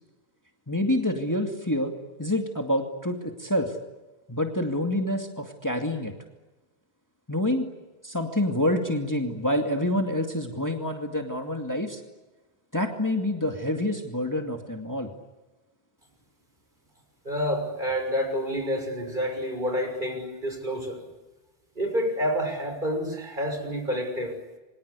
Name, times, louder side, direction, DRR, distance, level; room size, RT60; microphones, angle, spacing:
voice 1, 0.7-1.9 2.2-3.7 4.3-6.1 7.3-7.7 8.0-12.0 12.7-15.1, left 1 dB, 15° left, 3 dB, 2.3 m, -27 dB
voice 2, 17.2-21.0 21.7-24.4, equal, 50° right, 4 dB, 6.8 m, -28 dB
28.5 x 24.5 x 8.4 m, 1.1 s
omnidirectional pair, 1.1 m